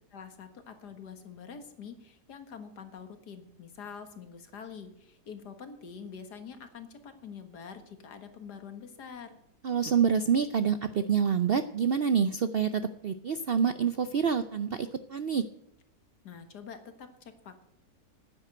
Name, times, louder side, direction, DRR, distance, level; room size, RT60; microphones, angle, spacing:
voice 1, 0.1-9.4 16.2-17.6, left 6 dB, 90° left, 8 dB, 2.1 m, -46 dB
voice 2, 9.6-15.4, right 7 dB, 70° right, 11 dB, 0.5 m, -27 dB
10.0 x 9.8 x 7.7 m, 0.81 s
omnidirectional pair, 1.7 m